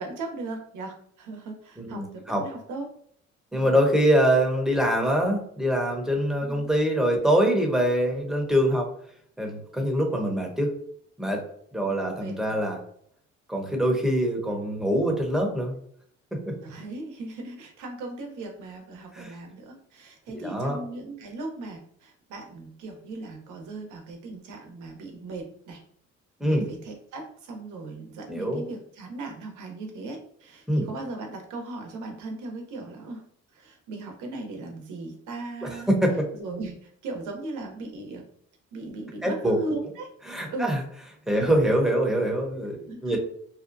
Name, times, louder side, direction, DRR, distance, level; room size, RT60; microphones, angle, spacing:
voice 1, 0.0-2.9 6.4-6.7 11.8-12.6 16.6-25.8 26.4-33.2 33.5-35.9 36.3-38.2 38.7-40.1 40.5-40.7 41.3-41.5 42.9-43.2, right 2 dB, 80° right, 3 dB, 0.7 m, -38 dB
voice 2, 1.8-2.4 3.5-8.9 9.4-10.7 11.2-11.4 11.7-12.8 13.5-15.8 16.3-16.5 19.1-19.3 20.4-20.8 26.4-26.6 28.3-28.6 30.7-30.9 35.6-36.1 39.2-39.6 40.3-40.8 41.3-42.8 43.0-43.2, equal, ahead, 1 dB, 0.7 m, -24 dB
2.6 x 2.2 x 2.5 m, 0.63 s
cardioid pair, 90°, 30 cm